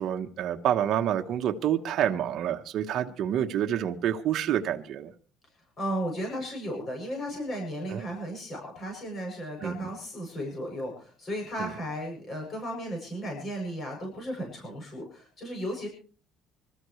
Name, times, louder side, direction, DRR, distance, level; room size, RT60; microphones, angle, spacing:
voice 1, 0.0-5.1 7.9-8.0 9.6-9.9 11.6-11.7, right 10 dB, 50° right, 1.0 m, -28 dB
voice 2, 5.8-15.9, equal, 30° left, 7.3 m, -35 dB
25.5 x 13.5 x 3.2 m
cardioid pair, 155°, 0 cm